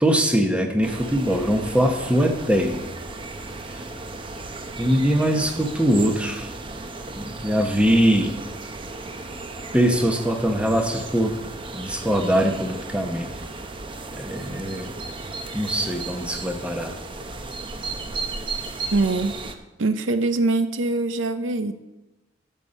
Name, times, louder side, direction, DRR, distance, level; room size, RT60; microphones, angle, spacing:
voice 1, 0.0-2.9 4.8-6.5 7.2-8.3 9.7-11.4 11.7-13.3 14.1-14.9 15.5-16.9, equal, 5° right, 4 dB, 1.0 m, -22 dB
sound 1, 0.8-19.5, right 3 dB, 25° right, 0.7 m, -35 dB
voice 2, 18.9-19.3 19.8-21.7, right 3 dB, 85° right, 11 dB, 0.6 m, -23 dB
13.0 x 5.6 x 5.2 m, 1.0 s
head